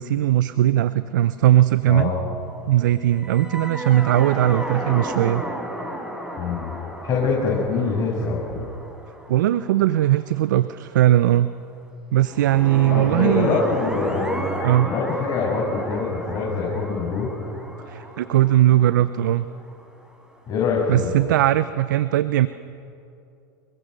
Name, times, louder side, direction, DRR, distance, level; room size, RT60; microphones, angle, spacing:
voice 1, 0.0-2.1 2.7-5.4 9.3-11.5 12.1-13.6 14.6-14.9 17.9-19.5 20.9-22.5, right 13 dB, 85° right, 14 dB, 0.6 m, -19 dB
voice 2, 1.9-2.3 6.4-6.8 7.0-8.7 12.9-14.5 14.8-17.3 20.5-21.1, left 4 dB, 45° left, -4 dB, 7.0 m, -24 dB
sound 1, 3.1-10.4 12.2-20.0, right 1 dB, 10° right, 4.8 m, -33 dB
26.5 x 22.0 x 6.6 m, 2.6 s
hypercardioid pair, 90°, 10 cm